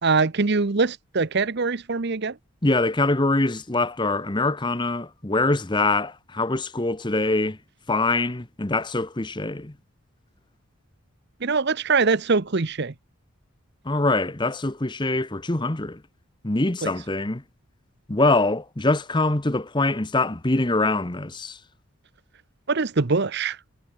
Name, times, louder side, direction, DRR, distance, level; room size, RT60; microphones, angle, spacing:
voice 1, 0.0-2.4 11.4-12.9 16.8-16.9 22.7-23.6, right 4 dB, 50° right, 0.8 m, -23 dB
voice 2, 2.6-7.6 7.9-9.7 13.8-16.0 16.4-17.4 18.1-21.6, left 2 dB, 20° left, 1.0 m, -24 dB
head